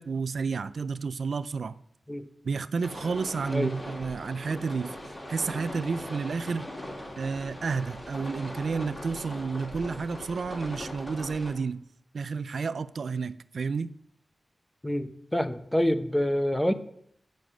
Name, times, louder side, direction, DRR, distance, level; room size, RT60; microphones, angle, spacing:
voice 1, 0.0-1.8 2.4-5.0 5.3-6.7 7.2-11.8 12.1-13.9, right 5 dB, 80° right, 0.3 m, -31 dB
sound 1, 2.8-11.5, left 1 dB, 30° left, 2.5 m, -40 dB
voice 2, 14.8-16.7, equal, 10° left, 0.7 m, -26 dB
7.2 x 6.4 x 7.5 m
wide cardioid pair, 70°, 0 cm